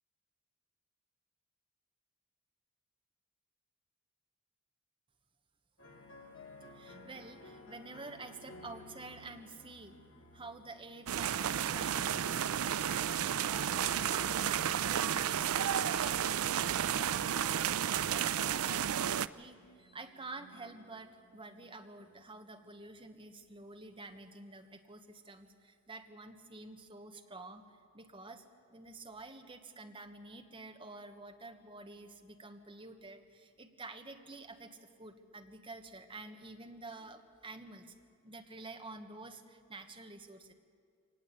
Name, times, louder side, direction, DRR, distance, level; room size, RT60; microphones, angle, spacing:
sound 1, 5.8-22.8, left 2 dB, 65° left, 3.0 m, -57 dB
voice 1, 6.7-10.0 10.3-27.6 27.9-28.4 28.7-37.9 38.2-40.5, right 3 dB, 25° right, 5 dB, 1.4 m, -49 dB
sound 2, 11.1-19.3, right 9 dB, 85° right, 0.5 m, -32 dB
23.5 x 19.0 x 8.4 m, 2.1 s
head